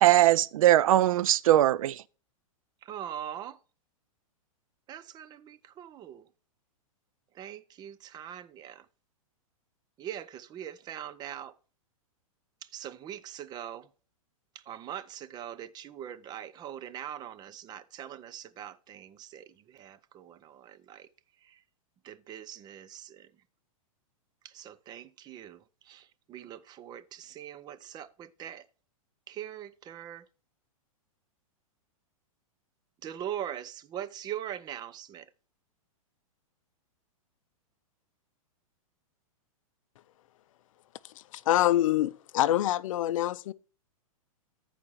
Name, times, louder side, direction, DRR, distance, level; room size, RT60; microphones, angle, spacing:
voice 1, 0.0-2.0, right 14 dB, 70° right, 0.5 m, -21 dB
voice 2, 2.8-3.6 4.9-6.3 7.3-8.9 10.0-11.6 12.6-13.9 14.5-21.1 21.4-21.6 22.0-23.3 24.4-28.7 29.3-30.3 33.0-35.3, right 10 dB, 25° right, 0.6 m, -42 dB
voice 3, 41.3-43.5, left 13 dB, 65° left, 0.5 m, -25 dB
14.5 x 5.0 x 3.1 m
hypercardioid pair, 135°, 18 cm